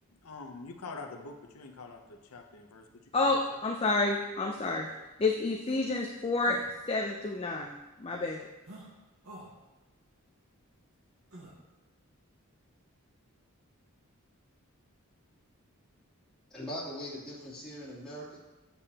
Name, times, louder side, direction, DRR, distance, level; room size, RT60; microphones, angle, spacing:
voice 1, 0.2-3.4, left 3 dB, 80° left, 4 dB, 0.7 m, -45 dB
voice 2, 3.1-4.9 5.2-8.5, left 3 dB, 25° left, 1 dB, 0.4 m, -30 dB
sound 1, 4.9-5.0 5.7-5.8 6.4-6.7 8.6-8.9 9.2-9.5 11.3-11.5, right 1 dB, 75° right, 1.5 m, -48 dB
voice 3, 16.5-18.4, equal, 5° left, -11 dB, 2.8 m, -41 dB
8.5 x 6.9 x 2.9 m, 1.1 s
head